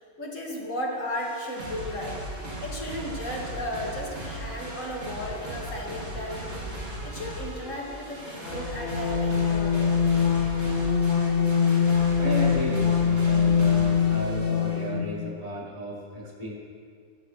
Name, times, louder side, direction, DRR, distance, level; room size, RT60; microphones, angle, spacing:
voice 1, 0.0-2.2 2.6-6.6 7.0-10.0, left 1 dB, 65° left, -2 dB, 3.0 m, -35 dB
sound 1, 1.2-14.9, right 1 dB, 45° right, 3.4 m, -37 dB
sound 2, 8.4-15.2, left 6 dB, 45° left, 1.4 m, -23 dB
voice 2, 12.2-16.5, left 1 dB, 25° right, -9 dB, 5.0 m, -34 dB
24.5 x 13.5 x 3.4 m, 2.2 s
omnidirectional pair, 1.4 m